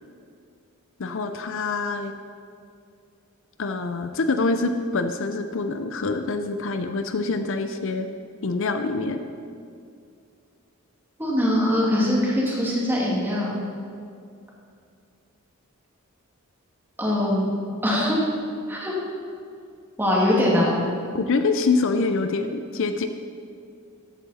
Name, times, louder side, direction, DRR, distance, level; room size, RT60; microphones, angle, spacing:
voice 1, 1.0-2.1 3.6-8.1 8.4-9.2 21.1-23.1, left 3 dB, 60° left, 8 dB, 0.6 m, -25 dB
voice 2, 11.2-13.5 17.0-17.5 17.8-18.2 18.7-18.9 20.0-20.8, left 1 dB, 10° right, -5 dB, 2.4 m, -22 dB
14.0 x 8.6 x 4.2 m, 2.4 s
head